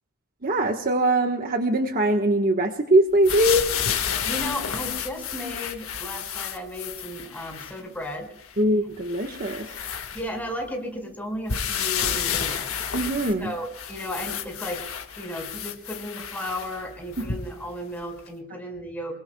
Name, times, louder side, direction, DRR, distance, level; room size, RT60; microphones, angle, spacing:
voice 1, 0.4-3.7 8.6-9.6 12.9-13.5, right 1 dB, 45° right, 4 dB, 1.3 m, -22 dB
sound 1, 3.2-7.8 8.4-8.5 9.0-10.7 11.5-17.7 18.3-18.4, left 8 dB, 80° left, 1.7 m, -31 dB
voice 2, 4.2-8.3 10.1-12.9 13.4-14.8 15.2-19.2, equal, 10° left, 1 dB, 5.0 m, -34 dB
28.0 x 22.5 x 2.3 m, 0.79 s
head